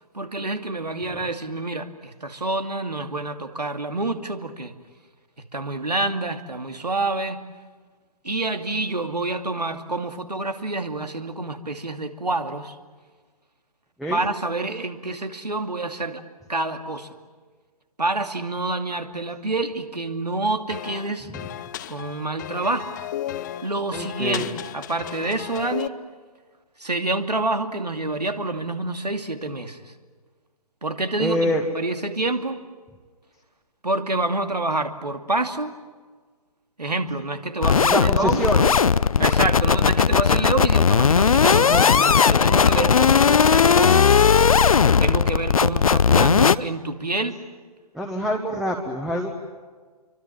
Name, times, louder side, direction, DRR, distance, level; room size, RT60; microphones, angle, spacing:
voice 1, 0.1-4.7 5.5-7.5 8.2-12.8 14.1-16.2 16.5-17.1 18.0-21.3 21.9-22.9 23.6-25.9 26.8-29.8 30.8-32.6 33.8-35.7 36.8-38.5 39.2-44.1 45.0-47.4, right 2 dB, 85° right, 7 dB, 2.5 m, -27 dB
sound 1, 20.7-25.9, left 12 dB, 30° left, 0.8 m, -34 dB
voice 2, 23.9-24.5 31.2-31.6 37.8-38.8 47.9-49.3, equal, ahead, 2 dB, 1.4 m, -26 dB
sound 2, 37.6-46.6, left 6 dB, 60° left, 0.7 m, -17 dB
28.5 x 24.5 x 7.7 m, 1.5 s
figure-of-eight pair, 135°, 20 cm